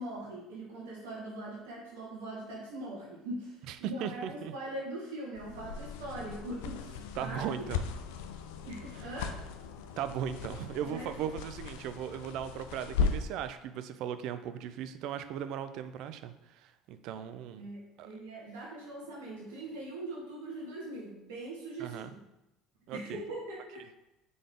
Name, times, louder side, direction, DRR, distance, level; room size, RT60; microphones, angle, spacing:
voice 1, 0.0-7.4 8.6-9.3 10.8-11.1 17.6-22.2 22.9-23.8, right 1 dB, 80° right, -4 dB, 1.3 m, -41 dB
voice 2, 3.7-4.5 7.2-7.8 8.9-9.1 10.0-17.6 18.0-18.1 21.8-22.1 22.9-23.2, right 9 dB, 65° right, 11 dB, 0.3 m, -38 dB
sound 1, 5.4-13.4, left 5 dB, 75° left, 0.3 m, -37 dB
3.8 x 3.4 x 3.7 m, 0.91 s
hypercardioid pair, 70°, 0 cm